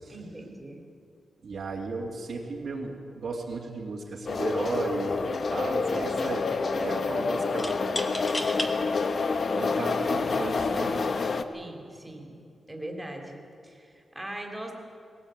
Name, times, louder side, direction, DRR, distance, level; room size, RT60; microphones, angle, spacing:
voice 1, 0.1-0.8 11.5-12.4 12.7-14.7, right 1 dB, 5° right, 2 dB, 2.9 m, -40 dB
voice 2, 1.4-6.5 6.7-7.8 9.5-10.9, right 3 dB, 60° right, -3 dB, 2.6 m, -34 dB
sound 1, 4.3-11.4, left 4 dB, 45° left, 1.0 m, -28 dB
sound 2, 7.6-8.7 9.4-9.5 10.4-10.7, left 1 dB, 20° left, 1.5 m, -35 dB
20.5 x 18.0 x 8.8 m, 2.4 s
wide cardioid pair, 175°, 0 cm